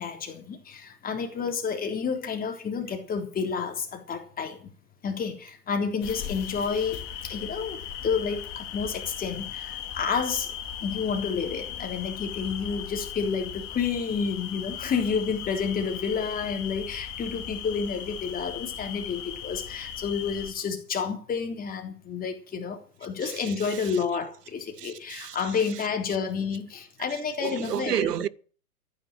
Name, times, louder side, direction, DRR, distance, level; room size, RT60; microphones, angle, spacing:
voice 1, 0.0-4.7 5.0-10.6 10.8-28.1, left 6 dB, 20° left, 3.6 m, -30 dB
sound 1, 6.0-20.5, left 9 dB, 40° left, 3.0 m, -38 dB
voice 2, 23.2-24.0 24.8-25.5 27.4-28.3, right 10 dB, 80° right, 1.0 m, -31 dB
14.5 x 10.0 x 7.7 m
hypercardioid pair, 120°, 47 cm